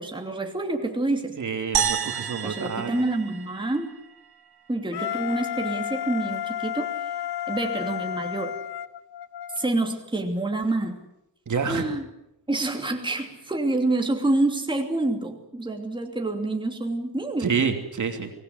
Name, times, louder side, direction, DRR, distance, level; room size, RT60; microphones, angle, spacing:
voice 1, 0.0-1.4 2.4-3.9 4.7-7.2 7.5-8.6 9.5-11.0 11.7-12.0 12.5-17.5, right 2 dB, 10° right, 2 dB, 2.8 m, -27 dB
voice 2, 1.4-2.9 11.5-11.9 17.4-18.3, right 5 dB, 50° right, 5 dB, 3.0 m, -27 dB
sound 1, 1.7-4.2, right 9 dB, 70° right, 1.3 m, -29 dB
Wind instrument woodwind instrument, 4.9-9.7, left 11 dB, 90° left, 1.0 m, -32 dB
24.0 x 19.0 x 8.0 m, 0.83 s
wide cardioid pair, 115°, 39 cm